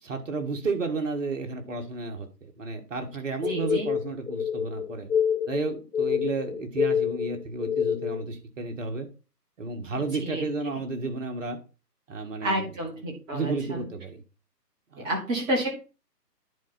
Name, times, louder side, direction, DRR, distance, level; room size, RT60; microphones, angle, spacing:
voice 1, 0.0-5.1 5.5-9.1 9.6-11.6 12.1-12.7 13.3-14.2 14.9-15.1, right 4 dB, 50° right, 4 dB, 1.8 m, -32 dB
sound 1, 3.4-8.3, left 8 dB, 60° left, 0.8 m, -27 dB
voice 2, 3.5-3.9 10.2-10.4 12.4-13.9 15.0-15.7, right 1 dB, 10° right, 0 dB, 1.1 m, -29 dB
10.5 x 4.3 x 4.1 m, 0.32 s
figure-of-eight pair, 140°, 49 cm